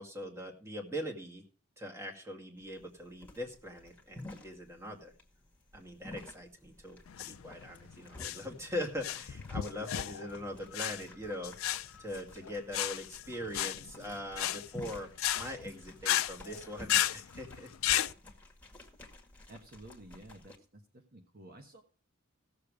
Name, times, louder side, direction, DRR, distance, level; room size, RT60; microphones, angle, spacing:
voice 1, 0.0-1.4 1.8-5.1 5.7-11.5 12.0-17.7, equal, 15° right, 1 dB, 2.1 m, -41 dB
sound 1, 2.6-20.6, left 2 dB, 10° left, 1.9 m, -52 dB
sound 2, 7.1-18.1, left 12 dB, 85° left, 0.5 m, -34 dB
voice 2, 19.5-21.8, right 1 dB, 45° right, 4 dB, 1.2 m, -52 dB
16.5 x 7.0 x 4.9 m, 0.39 s
head